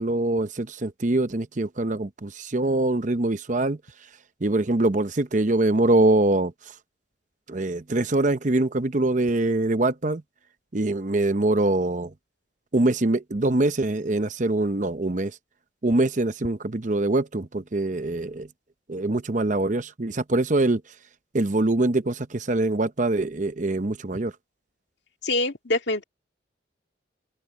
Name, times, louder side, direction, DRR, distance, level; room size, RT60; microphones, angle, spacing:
voice 1, 0.0-3.8 4.4-6.5 7.5-10.2 10.7-12.1 12.7-15.3 15.8-18.5 18.9-20.8 21.3-24.3, right 2 dB, 40° right, 0.8 m, -23 dB
voice 2, 25.2-26.0, left 2 dB, 65° left, 2.2 m, -25 dB
open air
head